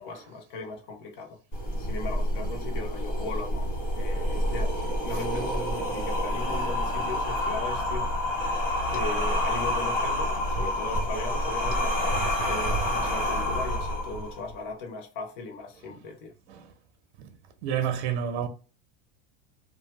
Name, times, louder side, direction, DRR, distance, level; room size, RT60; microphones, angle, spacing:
voice 1, 0.0-1.4 1.8-8.1 8.4-8.5 8.9-16.3, left 3 dB, 45° left, 0.6 m, -38 dB
sound 1, 1.5-14.5, left 1 dB, 25° left, 0.8 m, -28 dB
voice 2, 17.6-18.5, right 8 dB, 70° right, 0.7 m, -28 dB
3.0 x 2.0 x 2.9 m
supercardioid pair, 180°, 34 cm